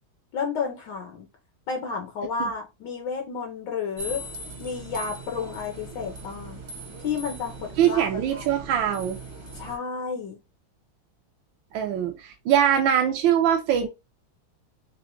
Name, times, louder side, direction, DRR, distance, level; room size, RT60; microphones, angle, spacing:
voice 1, 0.3-1.3 1.7-4.2 4.6-6.6 7.0-8.5 9.5-10.4, left 5 dB, 70° left, 1.4 m, -31 dB
sound 1, 4.0-9.8, right 2 dB, 35° right, 0.4 m, -40 dB
voice 2, 7.8-9.2 11.7-13.9, right 9 dB, 75° right, 1.4 m, -22 dB
6.0 x 2.1 x 3.0 m
omnidirectional pair, 2.2 m